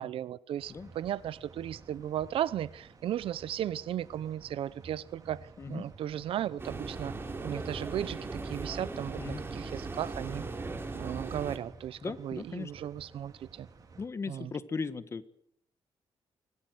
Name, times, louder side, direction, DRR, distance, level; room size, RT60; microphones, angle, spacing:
voice 1, 0.0-5.4 5.7-7.1 7.4-8.2 8.4-10.4 10.9-13.7 14.3-14.5, right 11 dB, 85° right, 0.8 m, -35 dB
sound 1, 0.6-14.1, right 4 dB, 40° right, 4.7 m, -54 dB
sound 2, 6.6-11.6, right 3 dB, 25° right, 3.4 m, -38 dB
voice 2, 12.0-12.7 14.0-15.3, left 4 dB, 30° left, 1.4 m, -37 dB
25.5 x 18.0 x 8.0 m
wide cardioid pair, 155°, 9 cm